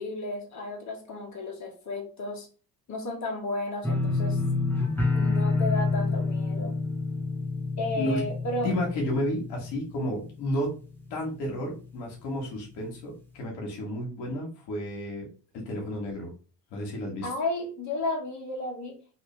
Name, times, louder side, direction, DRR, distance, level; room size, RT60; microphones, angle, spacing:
voice 1, 0.0-2.5 2.9-4.4 5.1-6.7 7.8-8.7 17.2-19.1, left 2 dB, 45° left, 0 dB, 1.5 m, -33 dB
sound 1, 3.8-10.7 11.0-11.5 11.9-12.0, left 3 dB, 5° left, 1.3 m, -28 dB
voice 2, 7.9-8.2 8.6-10.8 11.1-15.3 15.5-16.3 16.7-17.3, equal, 80° left, -1 dB, 1.5 m, -32 dB
3.2 x 2.9 x 3.2 m, 0.36 s
supercardioid pair, 65°, 40 cm